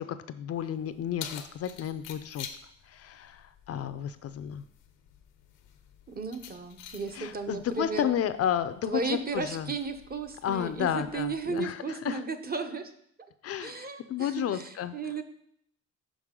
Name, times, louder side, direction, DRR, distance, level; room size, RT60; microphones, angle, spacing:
voice 1, 0.0-2.5 2.9-4.6 7.1-9.7 10.4-12.2 13.4-14.9, left 9 dB, 55° left, 11 dB, 0.4 m, -32 dB
Keys jangling, 0.6-11.6, left 9 dB, 90° left, 0.7 m, -49 dB
voice 2, 6.1-8.0 8.9-12.9 13.6-15.2, right 4 dB, 30° right, 7 dB, 0.7 m, -34 dB
6.2 x 5.2 x 3.7 m, 0.70 s
cardioid pair, 90°, 30 cm